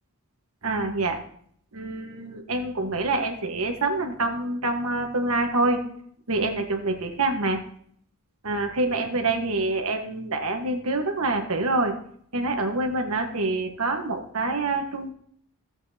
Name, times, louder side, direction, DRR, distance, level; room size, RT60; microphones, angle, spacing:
voice 1, 0.6-1.2 1.7-5.8 6.3-7.6 8.4-11.9 12.3-15.1, right 2 dB, 80° right, 4 dB, 1.5 m, -26 dB
15.0 x 7.8 x 2.8 m, 0.63 s
head